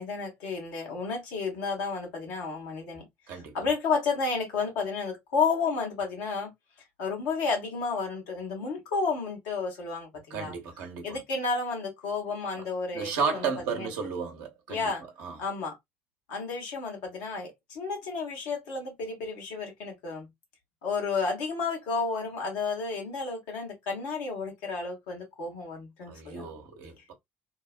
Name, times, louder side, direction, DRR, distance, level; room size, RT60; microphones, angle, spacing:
voice 1, 0.0-3.0 3.5-6.5 7.0-10.5 11.0-13.4 13.7-13.9 14.7-15.0 15.4-15.8 16.3-20.3 20.8-26.5, left 4 dB, 60° left, 1.0 m, -31 dB
voice 2, 10.3-11.2 12.9-14.9 15.2-15.4 26.1-27.1, right 6 dB, 55° right, 0.8 m, -33 dB
2.8 x 2.0 x 2.4 m
figure-of-eight pair, 60°, 7 cm